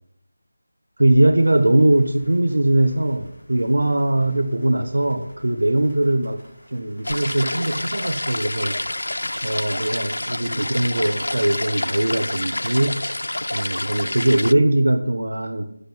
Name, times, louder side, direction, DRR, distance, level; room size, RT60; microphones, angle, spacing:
voice 1, 1.0-6.4 6.7-9.0 9.4-13.0 13.5-15.6, right 1 dB, 85° right, 6 dB, 1.4 m, -20 dB
sound 1, 1.4-10.7, equal, 10° left, 7.0 m, -50 dB
sound 2, 7.0-14.5, left 1 dB, 85° left, 0.4 m, -28 dB
11.5 x 6.8 x 9.5 m, 0.72 s
figure-of-eight pair, 170°, 0 cm